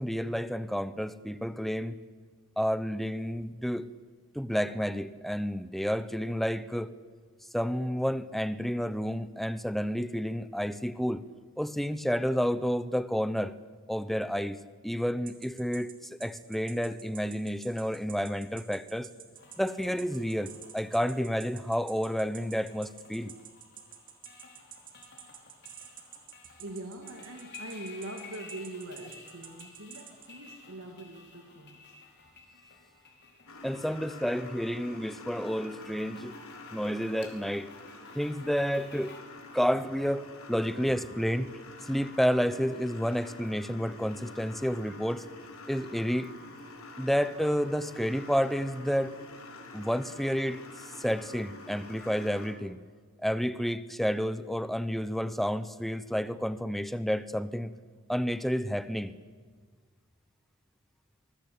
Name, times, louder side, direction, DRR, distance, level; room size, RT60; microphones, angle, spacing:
voice 1, 0.0-2.0 2.6-3.9 4.3-6.9 7.5-11.2 11.6-13.5 13.9-14.6 14.8-15.9 16.2-19.1 19.6-23.3 33.6-36.3 36.7-37.7 38.1-39.1 39.5-41.5 41.8-45.2 45.7-46.3 47.0-49.1 49.7-50.6 51.0-52.8 53.2-57.7 58.1-59.1, equal, ahead, 0.8 m, -30 dB
sound 1, 15.3-30.3, right 9 dB, 40° right, 2.8 m, -48 dB
sound 2, 19.3-39.2, left 4 dB, 50° left, 4.2 m, -54 dB
voice 2, 26.4-32.0, right 2 dB, 80° right, 2.2 m, -43 dB
sound 3, 33.5-52.5, left 2 dB, 80° left, 4.0 m, -47 dB
24.5 x 20.0 x 8.6 m
head